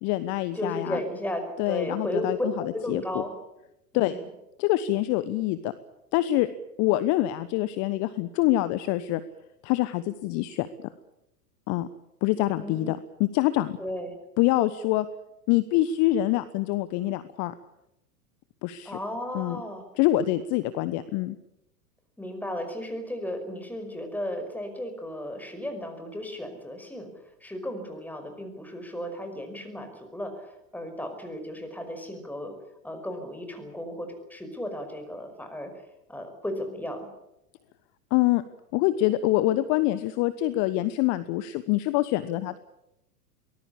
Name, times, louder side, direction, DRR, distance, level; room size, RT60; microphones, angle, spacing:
voice 1, 0.0-1.0 1.6-2.5 2.9-3.2 3.9-4.2 4.6-5.7 6.1-6.5 6.8-9.2 9.6-10.9 11.7-11.9 12.2-13.8 14.4-15.1 15.5-17.5 18.6-19.0 19.3-19.6 20.0-21.4 38.1-38.4 38.7-42.6, left 15 dB, 35° left, 14 dB, 1.1 m, -25 dB
voice 2, 0.5-3.3 3.9-4.3 12.6-12.9 13.8-14.2 18.9-19.9 22.2-27.1 27.4-32.5 32.8-35.7 36.1-37.1, left 1 dB, 5° left, 6 dB, 5.4 m, -34 dB
23.5 x 19.0 x 8.6 m, 0.86 s
figure-of-eight pair, 95°, 48 cm